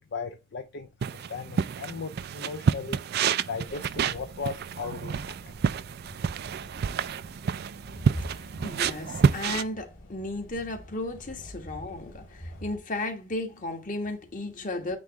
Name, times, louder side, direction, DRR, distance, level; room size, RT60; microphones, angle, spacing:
voice 1, 0.1-3.0 3.5-5.3, left 5 dB, 55° left, 0.5 m, -37 dB
sound 1, 1.0-9.6, right 6 dB, 50° right, 0.3 m, -29 dB
sound 2, 3.6-12.8, left 1 dB, 75° left, 2.0 m, -50 dB
voice 2, 8.6-15.0, left 2 dB, 40° left, 1.4 m, -34 dB
9.2 x 3.1 x 3.5 m
head